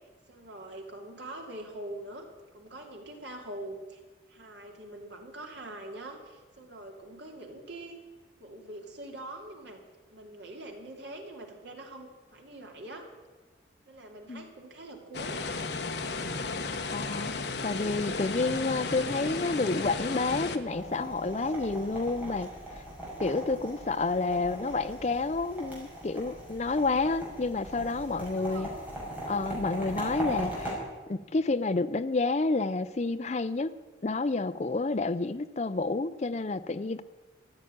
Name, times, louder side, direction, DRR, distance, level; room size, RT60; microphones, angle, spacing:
voice 1, 0.3-2.3 2.5-4.0 4.3-8.0 8.4-9.8 10.1-13.1 13.9-15.5 27.7-29.2, right 1 dB, 65° right, 2 dB, 2.8 m, -44 dB
sound 1, 15.1-20.6, left 3 dB, 60° left, 1.1 m, -34 dB
voice 2, 16.9-17.3 17.6-22.5 23.2-28.7 29.3-30.8 31.1-33.7 34.0-37.0, left 3 dB, 35° left, 14 dB, 0.5 m, -29 dB
sound 2, 20.7-30.7, equal, 10° right, 5.6 m, -39 dB
14.5 x 8.7 x 9.9 m, 1.3 s
head